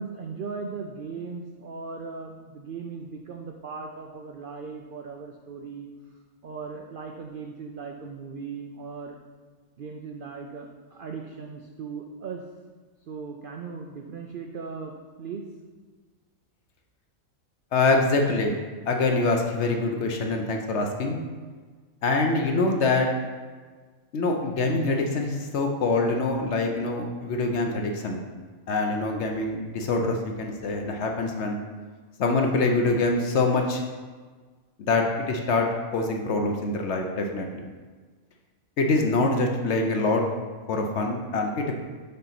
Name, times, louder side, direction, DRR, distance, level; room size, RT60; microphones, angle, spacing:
voice 1, 0.0-5.9 6.4-9.2 9.8-12.4 13.1-15.5, right 5 dB, 70° right, 2 dB, 0.5 m, -38 dB
voice 2, 17.7-18.6 18.9-21.2 22.0-23.1 24.1-28.2 28.7-31.6 32.2-33.8 34.8-37.6 38.8-40.2 40.7-41.7, left 3 dB, 60° left, 2 dB, 0.9 m, -25 dB
5.4 x 3.9 x 5.9 m, 1.5 s
omnidirectional pair, 1.5 m